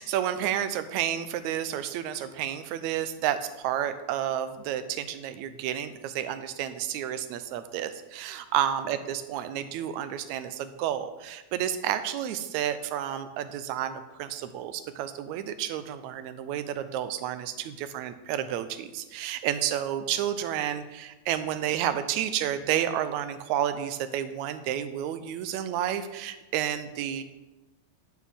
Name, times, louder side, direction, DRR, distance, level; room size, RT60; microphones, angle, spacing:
voice 1, 0.0-27.2, right 10 dB, 80° right, 10 dB, 1.9 m, -31 dB
11.0 x 4.7 x 6.9 m, 1.1 s
omnidirectional pair, 3.5 m